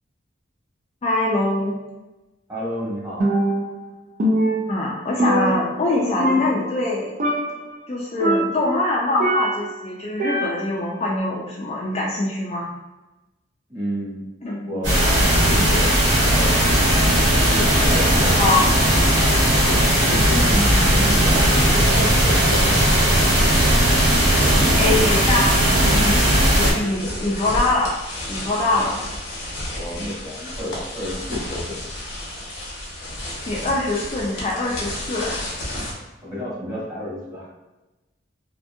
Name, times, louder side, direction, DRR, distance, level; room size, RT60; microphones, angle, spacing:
voice 1, 1.0-1.7 4.7-7.1 7.9-12.7 14.4-14.8 18.4-18.7 24.8-25.5 25.9-26.2 26.5-28.0 28.3-29.0 33.5-35.4, left 2 dB, 35° left, -4 dB, 0.4 m, -23 dB
voice 2, 2.5-3.4 13.7-14.2 14.6-15.9 16.2-17.1 17.4-18.6 19.5-23.4 24.3-25.1 27.0-27.3 29.7-31.8 36.2-37.5, left 1 dB, 20° right, -9 dB, 1.2 m, -30 dB
Percussion, 3.2-3.9 4.2-5.9 6.2-6.9 7.2-7.7 8.2-9.8 10.2-10.9, right 1 dB, 45° right, 0.3 m, -23 dB
sound 1, 14.8-26.7, right 1 dB, 80° right, 1.3 m, -17 dB
sound 2, 18.3-35.9, left 1 dB, 85° left, 0.8 m, -32 dB
2.7 x 2.5 x 2.2 m, 1.0 s
head